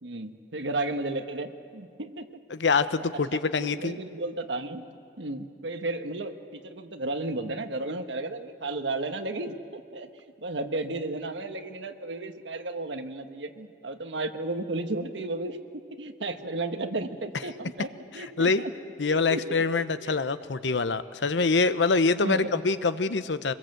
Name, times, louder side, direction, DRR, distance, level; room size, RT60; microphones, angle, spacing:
voice 1, 0.0-2.3 2.9-3.0 3.3-4.9 5.2-15.6 16.0-18.7 19.0-19.6 20.0-20.2 22.2-22.5, right 2 dB, 90° right, 7 dB, 1.4 m, -33 dB
voice 2, 2.5-4.0 18.1-18.7 19.0-23.5, left 4 dB, 85° left, 13 dB, 0.8 m, -25 dB
24.5 x 21.0 x 7.9 m, 2.3 s
head